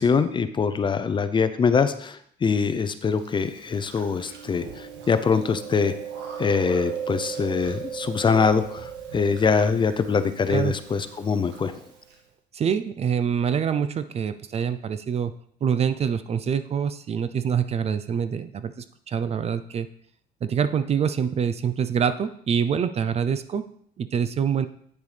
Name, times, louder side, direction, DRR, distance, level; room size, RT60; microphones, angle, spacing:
voice 1, 0.0-5.9 6.4-11.8, left 5 dB, 30° left, 11 dB, 0.5 m, -23 dB
Chewing mastication, 3.2-12.1, right 7 dB, 85° right, 1.6 m, -37 dB
voice 2, 12.5-15.3 15.6-19.9 20.4-23.7 24.0-24.7, right 7 dB, 40° right, 12 dB, 0.5 m, -25 dB
8.9 x 6.7 x 3.3 m, 0.65 s
cardioid pair, 110°, 17 cm